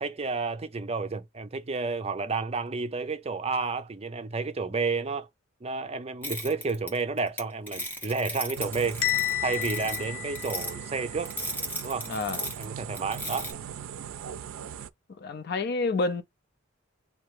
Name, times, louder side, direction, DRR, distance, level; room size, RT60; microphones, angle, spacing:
voice 1, 0.0-5.3 5.6-9.0 9.4-11.3 11.8-12.1 12.6-13.5, right 4 dB, 30° right, 0.5 m, -31 dB
sound 1, 6.2-7.4 7.7-10.0 10.4-10.7 11.3-12.6 12.9-13.5, left 1 dB, 10° left, 1.0 m, -35 dB
sound 2, 8.6-14.9, right 8 dB, 90° right, 0.4 m, -40 dB
Bell, 9.0-11.1, left 13 dB, 85° left, 0.8 m, -31 dB
voice 2, 12.1-12.4 15.2-16.2, left 3 dB, 55° left, 0.5 m, -28 dB
3.9 x 2.9 x 3.2 m
head